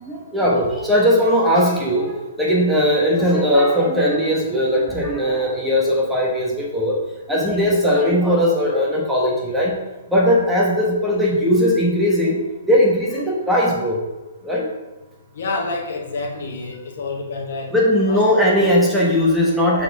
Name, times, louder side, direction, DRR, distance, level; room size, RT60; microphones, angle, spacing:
voice 1, 0.1-7.0 7.3-9.7 10.1-12.4 12.7-14.0 14.4-14.7 17.7-19.8, equal, 5° right, -4 dB, 1.3 m, -18 dB
voice 2, 15.3-17.7 18.1-18.5, left 3 dB, 65° left, 1 dB, 1.1 m, -28 dB
6.7 x 4.2 x 3.5 m, 1.1 s
hypercardioid pair, 145°, 0 cm